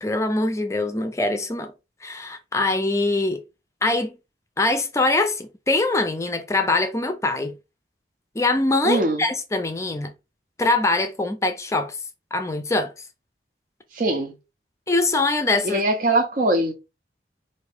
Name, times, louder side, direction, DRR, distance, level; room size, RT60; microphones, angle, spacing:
voice 1, 0.0-1.7 2.0-3.4 3.8-4.1 4.6-7.6 8.3-10.1 10.6-12.0 12.3-12.9 14.9-15.8, left 2 dB, 15° left, 0.5 m, -23 dB
voice 2, 8.8-9.3 13.9-14.3 15.6-16.7, right 1 dB, 45° right, 0.6 m, -21 dB
4.6 x 2.6 x 3.4 m
head